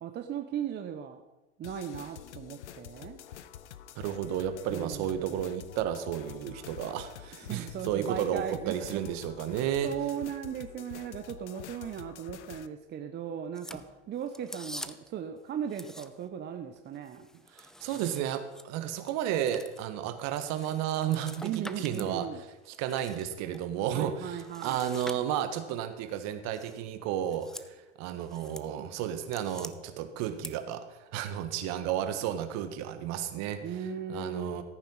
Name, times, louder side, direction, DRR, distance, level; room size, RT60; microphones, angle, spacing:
voice 1, 0.0-1.2 1.6-3.2 4.7-5.5 7.4-8.8 9.8-13.8 14.1-17.3 21.4-22.4 23.9-25.0 33.6-34.6, right 8 dB, 30° right, 6 dB, 1.0 m, -37 dB
sound 1, 1.6-12.7, left 10 dB, 75° left, 0.8 m, -47 dB
voice 2, 3.9-9.9 17.5-22.3 22.8-30.8 31.1-33.6 34.1-34.6, right 10 dB, 50° right, 9 dB, 1.6 m, -32 dB
sound 2, 13.5-15.2 15.7-16.4 16.8-22.1 22.5-23.6 24.4-25.7 26.5-26.8 27.2-27.7 28.1-28.7 29.0-29.7 30.2-30.5, left 1 dB, ahead, 0.5 m, -46 dB
14.5 x 8.9 x 5.5 m, 1.0 s
hypercardioid pair, 90°, 35 cm